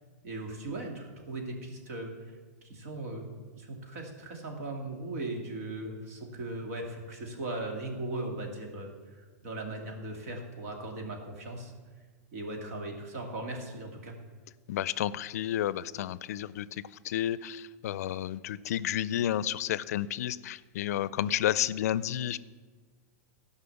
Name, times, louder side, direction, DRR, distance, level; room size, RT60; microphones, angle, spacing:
voice 1, 0.2-2.3 2.6-3.3 3.6-11.7 12.3-14.1, right 2 dB, 65° right, 2 dB, 2.5 m, -38 dB
voice 2, 14.7-22.4, left 11 dB, 75° left, 18 dB, 0.4 m, -31 dB
13.5 x 5.6 x 7.0 m, 1.4 s
supercardioid pair, 150°, 9 cm